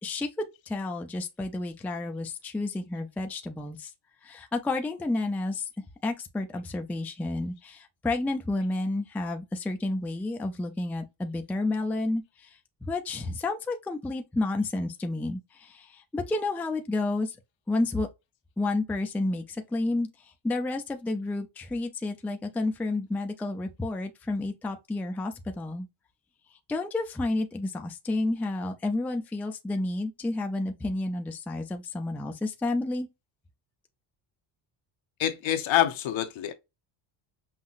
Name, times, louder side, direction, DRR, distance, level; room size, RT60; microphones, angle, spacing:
voice 1, 0.0-3.9 4.2-17.4 17.7-18.1 18.6-25.9 26.7-33.1, left 2 dB, 5° left, 0.3 m, -31 dB
voice 2, 35.2-36.5, left 11 dB, 70° left, 0.8 m, -26 dB
5.6 x 2.0 x 2.4 m
cardioid pair, 140°, 48 cm